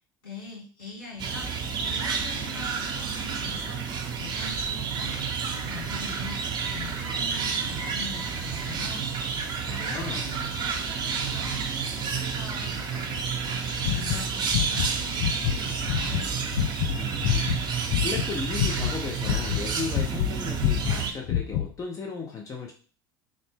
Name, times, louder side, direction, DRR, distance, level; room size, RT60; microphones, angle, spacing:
voice 1, 0.2-9.0 9.8-16.3, left 4 dB, 75° left, -6 dB, 1.9 m, -43 dB
sound 1, 1.2-21.1, right 6 dB, 40° right, 0.7 m, -30 dB
voice 2, 9.7-10.3 16.9-17.6 18.0-22.7, left 5 dB, 30° left, 1 dB, 0.7 m, -35 dB
sound 2, 13.8-14.9 15.2-15.6 15.9-18.3 18.6-20.3 20.6-21.7, left 12 dB, 60° left, 0.4 m, -26 dB
3.9 x 2.0 x 3.5 m, 0.40 s
figure-of-eight pair, 65°, 12 cm